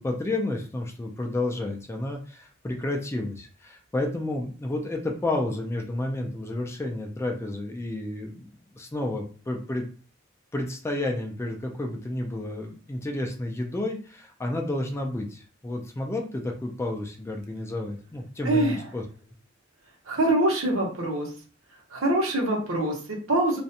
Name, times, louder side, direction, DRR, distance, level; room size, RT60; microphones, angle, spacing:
voice 1, 0.0-9.9 10.5-19.0, left 2 dB, 15° left, 2 dB, 0.3 m, -31 dB
voice 2, 18.4-18.8 20.1-21.3 21.9-23.6, right 1 dB, 80° right, -1 dB, 0.9 m, -24 dB
2.5 x 2.1 x 2.7 m, 0.39 s
head